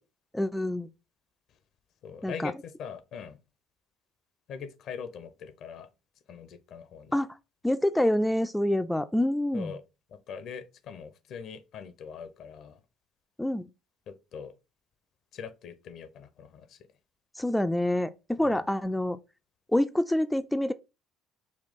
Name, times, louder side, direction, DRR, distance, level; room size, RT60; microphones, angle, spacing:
voice 1, 0.3-0.9 2.2-2.5 7.1-7.4 7.6-9.8 13.4-13.7 17.4-19.2 19.7-20.7, left 1 dB, 5° left, 0.3 m, -27 dB
voice 2, 2.0-3.4 4.5-5.9 6.3-7.1 9.5-9.8 10.3-12.8 14.1-14.5 15.3-16.8 18.4-18.6, left 6 dB, 60° left, 0.6 m, -42 dB
4.1 x 2.3 x 3.5 m
hypercardioid pair, 65°, 0 cm